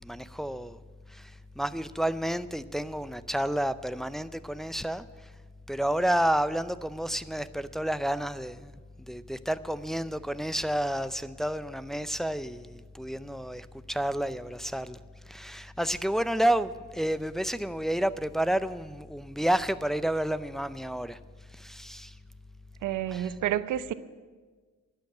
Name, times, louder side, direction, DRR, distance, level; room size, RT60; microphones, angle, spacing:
voice 1, 0.0-0.8 1.1-5.0 5.7-8.7 9.1-15.0 15.3-21.2 21.5-22.1 23.1-23.3, right 1 dB, ahead, 13 dB, 0.5 m, -30 dB
voice 2, 22.8-23.9, right 12 dB, 80° right, 14 dB, 0.8 m, -29 dB
12.5 x 9.2 x 9.2 m, 1.4 s
cardioid pair, 90°, 30 cm